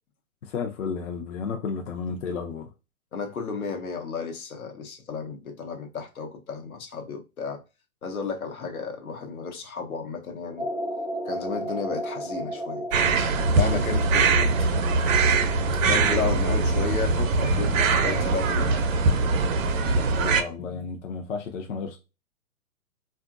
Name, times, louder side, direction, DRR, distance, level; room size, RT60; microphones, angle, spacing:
voice 1, 0.4-2.7 19.8-22.0, left 5 dB, 60° left, 0.7 m, -32 dB
voice 2, 3.1-7.6 8.0-10.7 11.3-13.2 13.5-14.5 15.7-18.8, left 5 dB, 85° left, 0.9 m, -33 dB
sound 1, 10.6-16.5, equal, ahead, 0.3 m, -35 dB
sound 2, 12.9-20.4, right 3 dB, 65° right, 0.7 m, -22 dB
3.6 x 2.5 x 2.4 m
hypercardioid pair, 130°, 42 cm